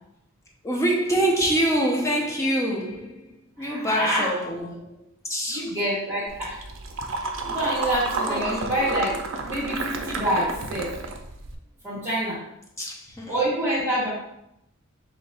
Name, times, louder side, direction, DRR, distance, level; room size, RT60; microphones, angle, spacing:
voice 1, 0.6-5.8 8.1-8.7 12.8-13.4, right 1 dB, 15° left, -2 dB, 0.7 m, -26 dB
voice 2, 3.6-4.3 5.5-6.6 7.4-9.2 9.4-10.9 11.8-12.4 13.3-14.1, right 1 dB, 10° right, -9 dB, 1.3 m, -26 dB
sound 1, 6.3-11.5, right 3 dB, 60° right, 0.5 m, -31 dB
3.4 x 2.9 x 4.2 m, 0.82 s
head